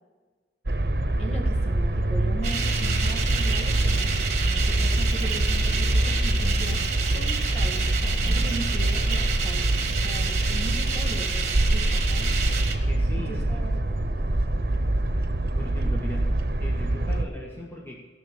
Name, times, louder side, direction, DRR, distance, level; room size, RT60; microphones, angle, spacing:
sound 1, 0.7-17.3, right 1 dB, 60° right, 1.0 m, -25 dB
voice 1, 1.2-4.2 4.4-9.7 10.0-12.3 13.3-13.9, right 1 dB, 35° left, 0 dB, 2.1 m, -39 dB
sound 2, 2.4-12.8, right 6 dB, 40° right, 1.4 m, -30 dB
voice 2, 12.7-13.7 15.6-18.0, left 1 dB, 15° left, -3 dB, 1.7 m, -39 dB
16.5 x 6.4 x 7.1 m, 1.4 s
head